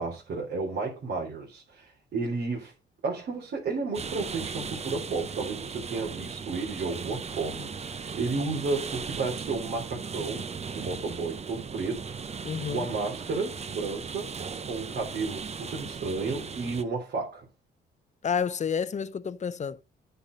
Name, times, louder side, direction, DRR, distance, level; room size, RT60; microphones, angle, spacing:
voice 1, 0.0-2.7 3.0-14.3 14.6-17.5, right 4 dB, 65° right, 3.4 m, -32 dB
sound 1, 3.9-16.8, right 5 dB, 30° right, 0.8 m, -37 dB
voice 2, 12.4-12.9 18.2-19.8, left 7 dB, 35° left, 0.7 m, -30 dB
9.9 x 5.9 x 5.1 m
cardioid pair, 90°, 20 cm